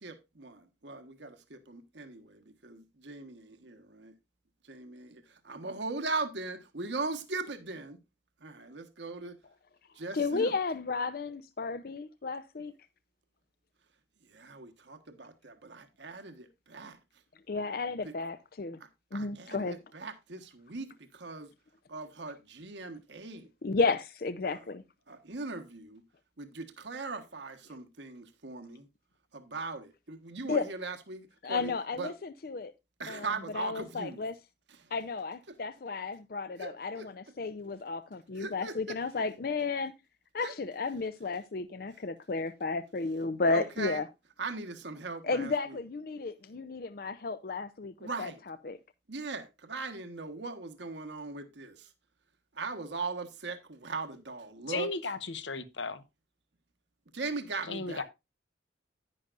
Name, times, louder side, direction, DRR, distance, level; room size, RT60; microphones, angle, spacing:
voice 1, 0.0-4.1 4.7-8.0 8.4-9.4 9.9-10.5 14.3-17.0 18.0-18.1 19.1-21.5 21.9-23.5 24.4-24.6 25.1-26.0 26.4-28.9 29.3-32.1 33.0-34.2 36.6-37.1 38.4-39.0 40.4-40.5 43.5-44.0 44.4-45.8 48.0-48.4 49.1-51.9 52.5-54.9 57.1-58.0, right 3 dB, 75° right, 1.3 m, -39 dB
voice 2, 10.1-12.7 17.5-18.8 19.1-19.8 23.6-24.8 30.5-30.7 31.4-32.7 33.1-33.3 33.5-34.4 34.9-39.9 40.3-44.1 45.2-48.8, left 4 dB, 50° left, 0.5 m, -33 dB
voice 3, 54.7-56.0 57.7-58.0, left 4 dB, 80° left, 1.1 m, -35 dB
10.5 x 10.5 x 2.5 m
head